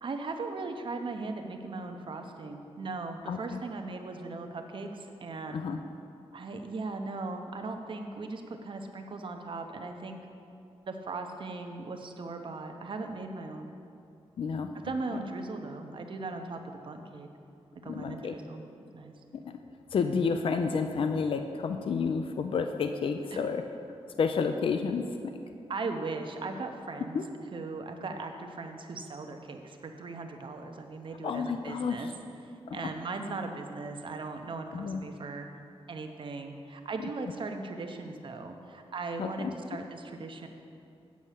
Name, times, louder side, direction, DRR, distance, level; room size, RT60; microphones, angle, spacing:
voice 1, 0.0-5.7 6.3-10.2 10.9-13.7 14.7-16.6 16.8-17.3 17.8-18.6 18.9-19.1 23.3-23.4 25.7-27.2 27.5-32.1 32.4-35.5 35.9-40.5, right 3 dB, 55° right, 5 dB, 0.8 m, -38 dB
voice 2, 3.3-3.6 5.5-5.8 14.4-14.7 17.9-18.3 19.9-23.6 24.2-25.3 27.1-27.2 31.2-32.1 32.7-32.8 34.7-35.0 39.2-39.5, left 5 dB, 60° left, 7 dB, 0.4 m, -30 dB
8.4 x 5.3 x 7.4 m, 2.6 s
wide cardioid pair, 125°, 10 cm